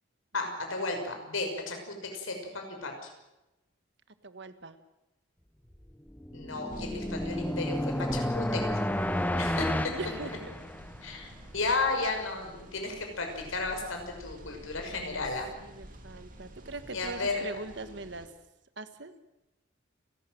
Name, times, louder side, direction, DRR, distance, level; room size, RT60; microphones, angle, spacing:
voice 1, 0.3-3.1 6.3-8.6 9.4-9.9 11.0-15.6 16.9-17.4, left 3 dB, 90° left, 3 dB, 5.8 m, -34 dB
voice 2, 4.2-4.8 9.5-10.6 14.9-15.2 15.6-18.3 18.8-19.1, right 2 dB, 60° right, 11 dB, 1.5 m, -42 dB
sound 1, 5.9-11.1, left 1 dB, 10° left, 0.8 m, -31 dB
sound 2, 6.7-18.3, right 1 dB, 40° right, 2.9 m, -48 dB
30.0 x 12.5 x 7.8 m, 0.98 s
head